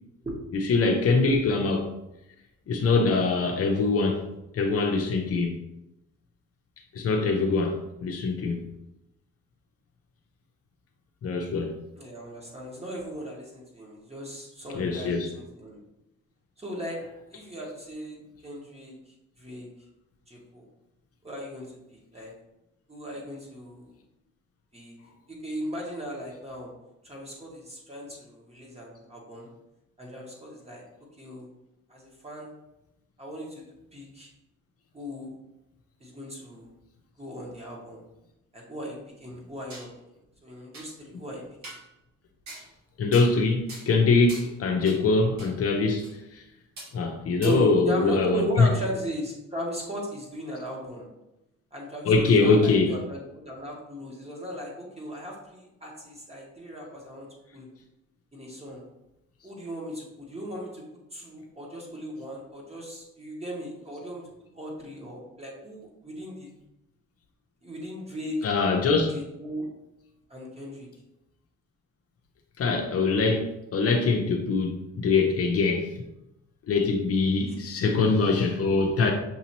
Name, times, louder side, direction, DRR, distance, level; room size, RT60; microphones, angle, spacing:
voice 1, 0.5-1.9 2.7-4.3 4.5-5.6 6.9-8.6 11.2-11.8 14.7-15.3 43.0-46.0 46.3-46.4 46.9-48.7 52.0-53.0 68.4-69.1 72.6-75.9 76.7-79.1, left 3 dB, 50° left, 3 dB, 0.7 m, -23 dB
voice 2, 12.0-15.8 16.6-17.0 17.3-19.0 19.4-19.7 20.3-20.7 21.2-22.3 22.9-23.9 24.7-24.9 25.3-26.7 27.0-29.5 30.0-30.8 31.2-31.5 31.9-32.5 33.2-33.6 33.9-34.3 34.9-35.4 36.0-36.7 37.2-38.0 38.5-39.9 40.4-41.4 44.8-44.9 47.4-51.1 51.7-57.3 57.5-57.7 58.3-58.8 59.4-60.8 61.1-64.3 64.5-66.5 67.6-68.4 69.1-69.7 70.3-70.9 77.5-77.6, equal, 20° right, -2 dB, 1.5 m, -37 dB
sound 1, 39.5-39.9 40.3-40.4 40.7-40.9 41.6-41.9 42.5-42.7 43.1-43.4 43.7-43.9 44.3-44.5 44.9-45.0 45.4-45.5 46.0-46.1 46.8-46.9 47.4-47.5, right 2 dB, 65° right, 1.7 m, -42 dB
6.0 x 2.8 x 2.9 m, 0.89 s
cardioid pair, 90°, 30 cm